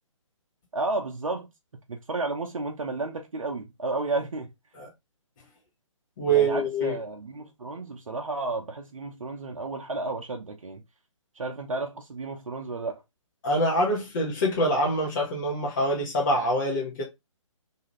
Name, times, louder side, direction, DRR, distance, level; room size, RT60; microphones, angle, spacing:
voice 1, 0.7-1.5 1.9-4.5 6.3-10.8 11.3-13.0, right 3 dB, 85° right, 0.6 m, -32 dB
voice 2, 6.2-7.0 13.4-17.0, right 1 dB, 40° left, 0.8 m, -25 dB
2.7 x 2.4 x 2.9 m
figure-of-eight pair, 140°, 17 cm